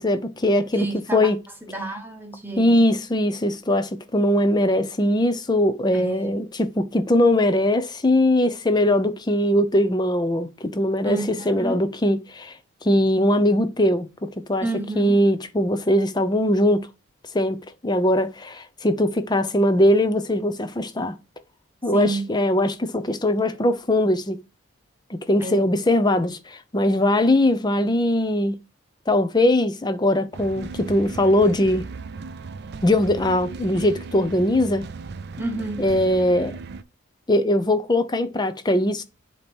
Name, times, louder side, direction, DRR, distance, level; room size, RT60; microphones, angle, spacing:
voice 1, 0.0-1.4 2.6-12.6 12.8-14.6 15.0-16.9 17.3-17.6 17.8-21.1 21.8-24.4 25.1-28.5 29.1-31.8 32.8-34.9 35.8-36.5 37.3-39.0, left 1 dB, 20° left, 0.6 m, -21 dB
voice 2, 0.7-1.3 1.6-2.9 5.9-6.4 11.0-11.8 14.6-15.2 21.9-22.3 25.4-25.6 35.4-35.8, right 2 dB, 10° right, 1.1 m, -31 dB
sound 1, 30.3-36.8, right 4 dB, 50° right, 0.4 m, -36 dB
7.3 x 2.9 x 5.3 m
head